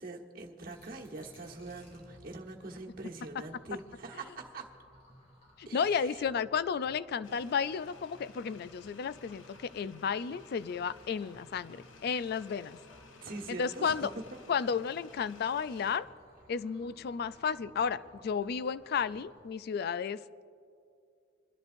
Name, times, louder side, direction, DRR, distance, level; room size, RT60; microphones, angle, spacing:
voice 1, 0.0-4.6 5.6-6.2 13.2-14.4, right 2 dB, 50° right, 0 dB, 1.3 m, -43 dB
sound 1, 0.7-19.5, equal, 35° left, 3.2 m, -59 dB
voice 2, 5.6-12.8 13.5-14.1 14.5-16.1 16.5-20.2, left 6 dB, 55° left, 16 dB, 0.3 m, -33 dB
sound 2, 7.2-16.0, left 4 dB, 85° left, 0.7 m, -57 dB
28.0 x 10.5 x 2.6 m, 2.5 s
head